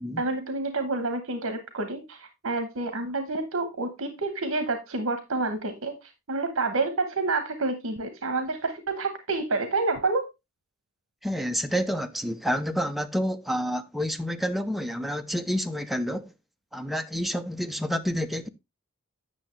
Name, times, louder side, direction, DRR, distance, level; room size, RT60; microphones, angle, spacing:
voice 1, 0.2-10.3, right 3 dB, 75° right, 1.0 m, -29 dB
voice 2, 11.2-16.3 16.7-18.5, equal, ahead, 0.6 m, -29 dB
9.0 x 6.4 x 3.2 m
head